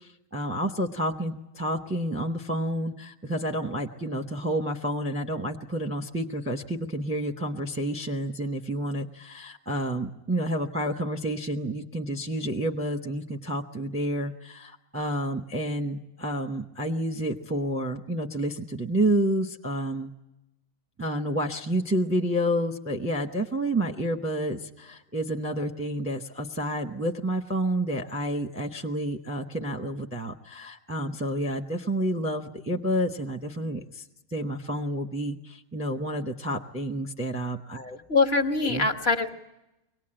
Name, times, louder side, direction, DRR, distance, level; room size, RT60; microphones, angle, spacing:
voice 1, 0.0-20.1 21.0-34.0 34.3-38.0 38.7-38.9, right 1 dB, 10° right, 3 dB, 0.7 m, -29 dB
voice 2, 38.1-39.3, left 3 dB, 45° left, 4 dB, 1.3 m, -23 dB
23.5 x 18.5 x 8.8 m, 0.94 s
omnidirectional pair, 1.6 m